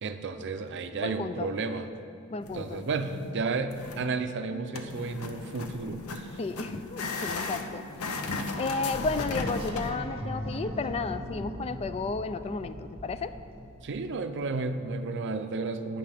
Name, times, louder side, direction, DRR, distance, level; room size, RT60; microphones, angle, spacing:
voice 1, 0.0-1.9 2.5-6.4 13.8-16.0, right 3 dB, 55° right, 9 dB, 0.5 m, -32 dB
voice 2, 1.0-1.5 2.3-2.8 6.4-7.8 8.6-13.3, left 4 dB, 30° left, 11 dB, 0.3 m, -33 dB
sound 1, 2.4-3.3 3.7-4.1 4.7-9.9, left 3 dB, 85° left, 0.7 m, -36 dB
sound 2, 8.9-14.1, equal, 30° right, 0.9 m, -39 dB
11.0 x 8.5 x 3.4 m, 2.6 s
head